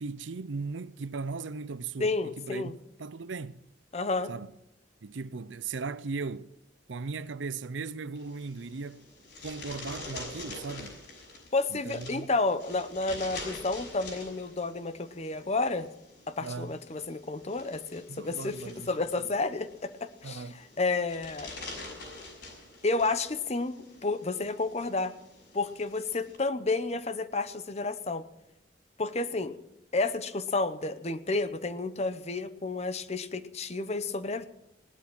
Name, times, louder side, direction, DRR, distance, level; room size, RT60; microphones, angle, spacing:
voice 1, 0.0-3.6 4.3-4.5 5.0-6.5 6.9-9.1 9.4-11.0 11.7-12.3 16.4-16.8 18.1-18.9 19.1-19.3 20.2-20.6, right 4 dB, 85° right, 0.6 m, -38 dB
voice 2, 2.0-2.7 3.9-4.3 11.5-15.9 16.3-21.5 22.8-25.1 25.5-28.2 29.0-29.6 29.9-34.5, left 3 dB, 35° left, 0.8 m, -31 dB
sound 1, 8.2-26.4, left 2 dB, 65° left, 6.3 m, -46 dB
17.5 x 12.0 x 6.1 m
head